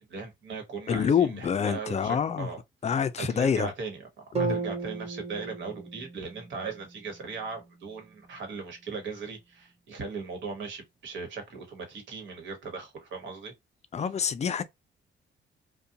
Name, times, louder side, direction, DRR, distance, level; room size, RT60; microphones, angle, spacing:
voice 1, 0.1-2.6 2.9-4.0 4.4-13.5, right 4 dB, 70° right, 1.2 m, -38 dB
voice 2, 0.9-2.5 2.8-3.7 4.3-4.6 13.9-14.6, left 7 dB, 35° left, 0.4 m, -26 dB
sound 1, 4.3-8.4, right 5 dB, 30° right, 0.7 m, -36 dB
2.5 x 2.2 x 2.7 m
cardioid pair, 90°, 20 cm